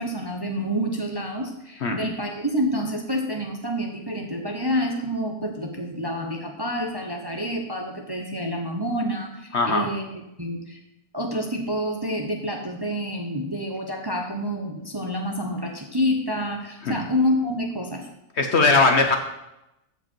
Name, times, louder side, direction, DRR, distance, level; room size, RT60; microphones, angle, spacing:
voice 1, 0.0-10.0 10.4-10.8 11.1-18.1, equal, 20° right, 2 dB, 0.9 m, -28 dB
voice 2, 9.5-9.9 16.8-17.0 18.4-19.2, left 3 dB, 50° left, 4 dB, 1.0 m, -19 dB
14.5 x 5.2 x 4.5 m, 0.90 s
omnidirectional pair, 1.6 m